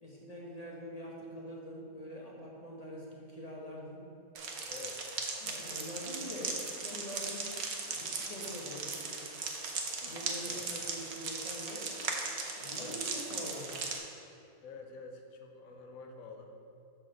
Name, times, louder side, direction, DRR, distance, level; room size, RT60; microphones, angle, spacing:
voice 1, 0.0-4.0 5.4-9.3 10.0-11.9 12.6-13.9, equal, 30° left, -4 dB, 0.8 m, -44 dB
sound 1, 4.4-14.0, right 4 dB, 55° right, 0.9 m, -38 dB
voice 2, 4.6-5.1 10.4-10.7 12.8-13.0 14.6-16.5, left 4 dB, 65° left, 4 dB, 1.1 m, -48 dB
6.2 x 4.4 x 6.3 m, 2.6 s
omnidirectional pair, 1.7 m